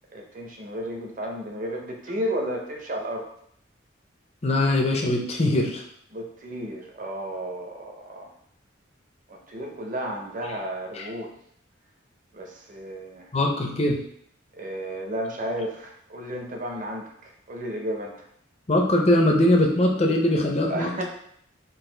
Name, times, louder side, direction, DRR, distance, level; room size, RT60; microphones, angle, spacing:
voice 1, 0.1-3.3 6.1-8.3 9.3-11.3 12.3-13.3 14.5-18.3 20.7-21.0, right 1 dB, 40° right, 1 dB, 0.7 m, -33 dB
voice 2, 4.4-5.8 11.0-11.1 13.3-14.0 18.7-20.9, left 1 dB, 30° left, 1 dB, 0.6 m, -21 dB
4.0 x 2.5 x 3.8 m, 0.68 s
head